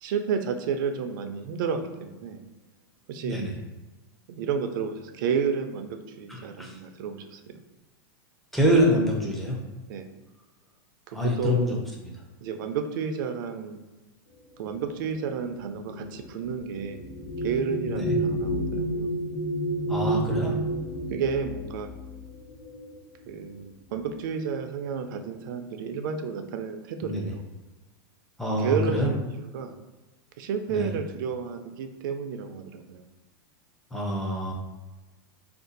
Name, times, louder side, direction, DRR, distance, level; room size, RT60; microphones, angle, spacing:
voice 1, 0.0-2.4 3.1-3.4 4.3-7.5 9.9-10.1 11.1-11.8 12.4-13.8 14.6-17.0 17.4-19.2 20.5-20.6 21.1-21.9 23.3-27.4 28.6-29.7 30.4-33.0, right 6 dB, 60° right, 6 dB, 0.4 m, -31 dB
voice 2, 3.2-3.5 6.3-6.7 8.5-9.6 11.1-11.8 17.9-18.2 19.9-20.6 27.0-27.3 28.4-29.1 30.7-30.9 33.9-34.5, equal, ahead, -3 dB, 0.5 m, -25 dB
sound 1, 14.6-23.5 24.4-24.6 24.9-25.5, right 1 dB, 60° left, 0.7 m, -31 dB
2.6 x 2.3 x 3.8 m, 1.1 s
supercardioid pair, 150°, 12 cm